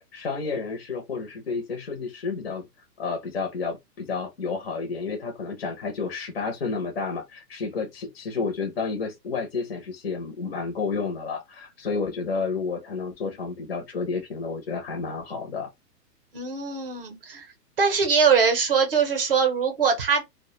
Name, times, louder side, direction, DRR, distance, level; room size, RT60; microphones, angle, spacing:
voice 1, 0.0-2.7 3.0-15.7, left 4 dB, 40° left, 0.5 m, -31 dB
voice 2, 16.3-17.5 17.8-20.2, right 6 dB, 35° right, 0.5 m, -22 dB
2.1 x 2.1 x 2.9 m
hypercardioid pair, 170°, 50 cm